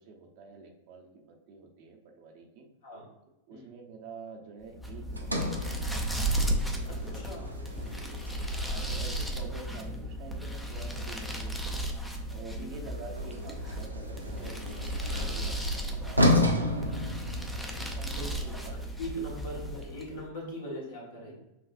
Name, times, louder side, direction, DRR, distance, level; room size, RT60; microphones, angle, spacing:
voice 1, 0.0-2.7 3.5-5.5 5.9-7.5 7.9-8.0 8.7-11.9 12.3-14.9 15.2-17.0 17.3-18.8 21.3-21.4, right 4 dB, 45° right, 1 dB, 0.7 m, -48 dB
sound 1, 4.7-20.2, right 1 dB, 5° left, 0.6 m, -35 dB
Sliding door, 5.2-9.4 12.9-17.8, left 1 dB, 85° right, 0.5 m, -32 dB
voice 2, 7.0-7.5 12.5-12.8 18.1-21.3, equal, 60° left, -2 dB, 1.2 m, -41 dB
6.0 x 2.4 x 2.5 m, 0.99 s
figure-of-eight pair, 90°, 0 cm